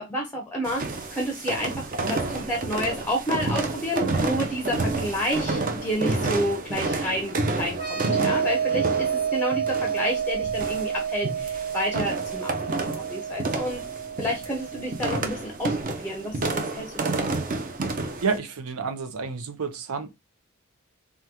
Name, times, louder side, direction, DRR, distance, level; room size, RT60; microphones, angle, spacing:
voice 1, 0.0-13.8 14.2-17.4, equal, 10° left, 0.5 m, -30 dB
sound 1, 0.6-18.4, right 3 dB, 40° right, 0.5 m, -30 dB
sound 2, 7.7-15.2, right 8 dB, 20° right, 1.3 m, -29 dB
voice 2, 18.2-20.1, right 5 dB, 85° right, 0.6 m, -29 dB
3.5 x 2.2 x 2.7 m
head